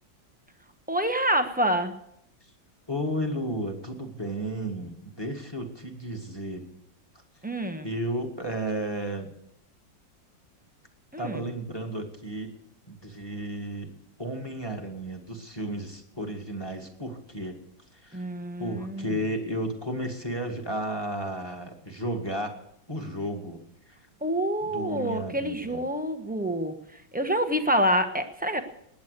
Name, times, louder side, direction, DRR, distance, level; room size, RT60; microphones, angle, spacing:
voice 1, 0.9-1.9 7.4-7.9 11.1-11.4 18.1-19.1 24.2-26.7 27.1-28.6, equal, 5° right, 6 dB, 0.8 m, -27 dB
voice 2, 2.9-6.7 7.8-9.3 11.2-12.5 12.9-13.9 14.2-17.6 17.9-18.2 18.6-22.6 22.9-23.6 23.9-24.0 24.6-25.9, right 1 dB, 15° left, 4 dB, 1.9 m, -33 dB
19.5 x 8.7 x 6.8 m, 0.76 s
omnidirectional pair, 2.0 m